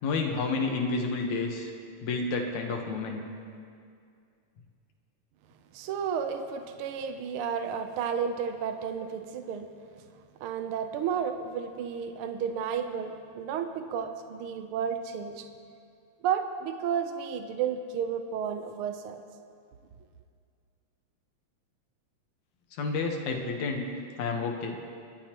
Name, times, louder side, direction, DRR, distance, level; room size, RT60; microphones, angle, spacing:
voice 1, 0.0-1.7 2.0-3.2 22.8-23.9 24.2-24.8, left 4 dB, 75° left, 2 dB, 2.6 m, -30 dB
voice 2, 5.7-9.7 10.4-15.5 16.2-19.2, right 7 dB, 75° right, 7 dB, 1.2 m, -32 dB
27.5 x 12.0 x 3.0 m, 2.3 s
omnidirectional pair, 3.3 m